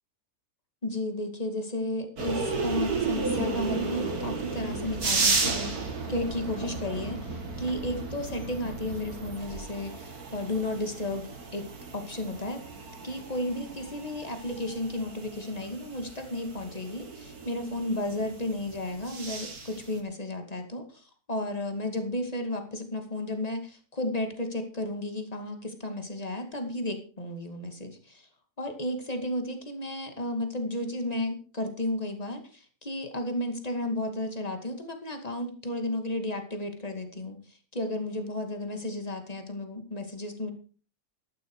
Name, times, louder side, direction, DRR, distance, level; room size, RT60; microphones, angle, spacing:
voice 1, 0.8-11.3 11.5-11.6 11.9-12.6 13.0-28.3 28.6-40.5, left 1 dB, 25° left, 6 dB, 2.4 m, -33 dB
sound 1, 2.2-20.0, right 4 dB, 70° right, 2.8 m, -34 dB
14.0 x 11.5 x 4.9 m, 0.39 s
omnidirectional pair, 1.7 m